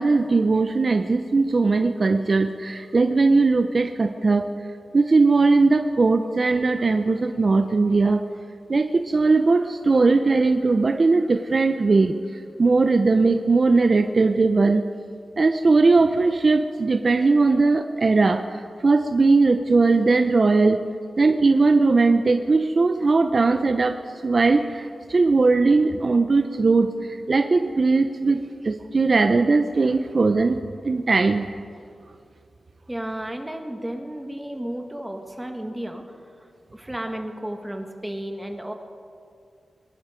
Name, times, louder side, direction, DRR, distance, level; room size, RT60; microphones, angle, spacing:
voice 1, 0.0-4.5 4.9-8.2 8.7-12.2 12.6-14.9 15.4-20.8 21.2-30.6 30.8-31.5, right 3 dB, 50° right, 7 dB, 0.7 m, -19 dB
voice 2, 32.9-36.0 36.4-38.7, right 1 dB, 10° right, 4 dB, 1.8 m, -33 dB
23.5 x 10.5 x 5.2 m, 2.3 s
cardioid pair, 60°, 0 cm